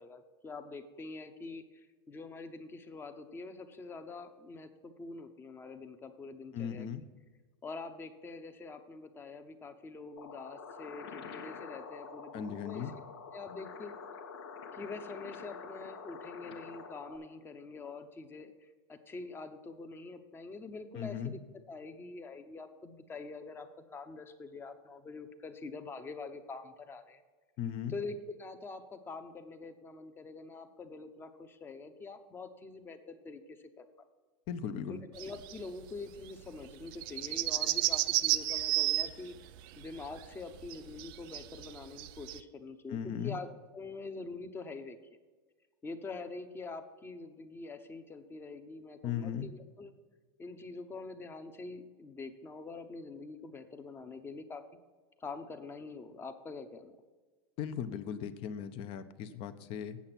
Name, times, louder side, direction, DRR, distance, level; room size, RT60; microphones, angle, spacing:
voice 1, 0.0-6.9 7.6-12.9 13.3-13.9 14.7-21.4 21.7-27.2 27.9-33.8 34.9-39.3 39.8-43.5 43.7-45.0 45.8-49.9 50.4-54.6 55.2-56.9, left 3 dB, 15° left, 9 dB, 0.8 m, -45 dB
voice 2, 6.5-7.0 12.3-12.9 20.9-21.3 27.6-27.9 34.5-35.0 42.9-43.4 49.0-49.5 57.6-60.0, left 8 dB, 45° left, 11 dB, 0.8 m, -37 dB
sound 1, 10.2-17.2, left 5 dB, 90° left, 1.3 m, -47 dB
sound 2, 35.2-35.7 36.0-36.1 36.2-36.3 36.6-42.4, right 16 dB, 60° right, 0.5 m, -32 dB
8.5 x 7.1 x 6.0 m, 1.4 s
supercardioid pair, 130°, 13 cm